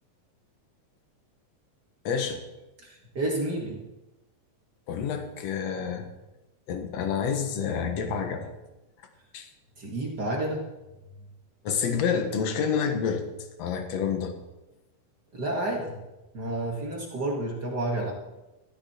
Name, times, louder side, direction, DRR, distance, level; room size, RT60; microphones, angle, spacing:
voice 1, 2.0-2.4 4.9-6.1 6.7-8.5 9.3-9.5 11.6-13.3 13.6-14.3, left 6 dB, 55° left, 6 dB, 2.1 m, -28 dB
voice 2, 2.8-3.8 9.8-10.7 15.3-16.0 16.3-18.1, right 1 dB, 35° right, -1 dB, 1.8 m, -30 dB
14.5 x 13.5 x 4.4 m, 1.0 s
omnidirectional pair, 4.2 m